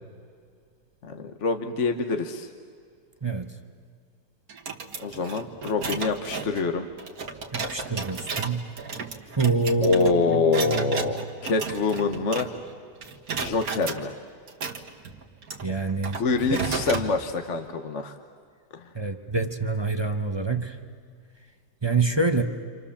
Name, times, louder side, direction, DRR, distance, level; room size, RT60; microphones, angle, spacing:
voice 1, 1.0-2.5 5.0-6.9 9.8-12.5 13.4-14.1 16.1-18.1 18.7-18.9, left 4 dB, 50° left, 6 dB, 1.3 m, -26 dB
voice 2, 3.2-3.5 7.5-8.6 9.4-11.1 15.6-16.2 16.5-16.6 18.9-20.8 21.8-22.4, right 3 dB, 20° right, 6 dB, 0.8 m, -26 dB
sound 1, 4.5-12.8 13.0-14.0 14.5-17.1, right 4 dB, 60° right, 2.0 m, -34 dB
29.5 x 26.5 x 7.3 m, 2.1 s
omnidirectional pair, 1.8 m